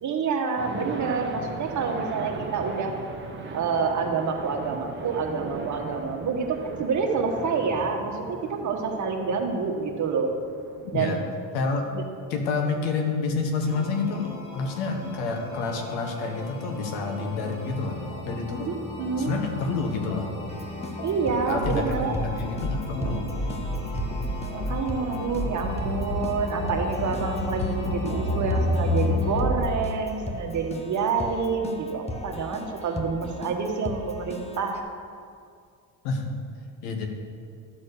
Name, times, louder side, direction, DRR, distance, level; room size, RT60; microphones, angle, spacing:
voice 1, 0.0-3.0 3.5-10.3 10.9-11.2 11.9-12.0 18.7-19.3 21.0-22.1 24.5-34.8, right 5 dB, 45° right, 2 dB, 1.4 m, -28 dB
sound 1, 0.6-11.3, right 4 dB, 30° right, 1.1 m, -39 dB
voice 2, 11.5-11.8 12.3-18.0 18.2-18.7 19.2-20.3 21.4-23.3 36.0-36.4 36.8-37.1, left 4 dB, 85° left, 3 dB, 1.4 m, -28 dB
sound 2, 13.6-29.6, left 1 dB, 45° left, 2.3 m, -31 dB
Keyboard (musical), 20.5-34.8, left 1 dB, 15° left, 0.9 m, -38 dB
12.0 x 4.3 x 6.7 m, 2.3 s
supercardioid pair, 90°, 40 cm